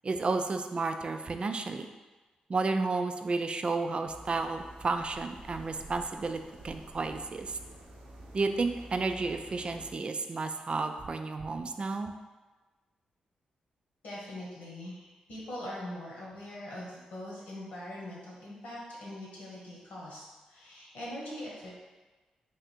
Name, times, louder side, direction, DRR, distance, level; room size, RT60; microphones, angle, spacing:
voice 1, 0.0-1.9 2.5-7.6 8.3-12.1, right 3 dB, 40° right, 7 dB, 0.3 m, -32 dB
sound 1, 4.0-9.9, right 1 dB, 75° right, 0.7 m, -49 dB
voice 2, 14.0-21.7, left 1 dB, 85° left, -5 dB, 1.3 m, -42 dB
3.4 x 2.5 x 4.3 m, 1.2 s
cardioid pair, 55°, 3 cm